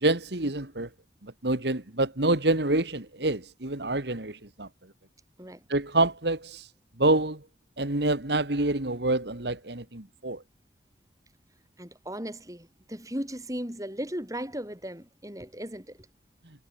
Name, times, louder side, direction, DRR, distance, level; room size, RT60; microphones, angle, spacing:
voice 1, 0.0-0.9 1.2-4.7 5.7-6.7 7.0-7.4 7.8-10.4, right 2 dB, 65° right, 2.1 m, -27 dB
voice 2, 11.8-16.1, equal, 20° right, 5.2 m, -37 dB
head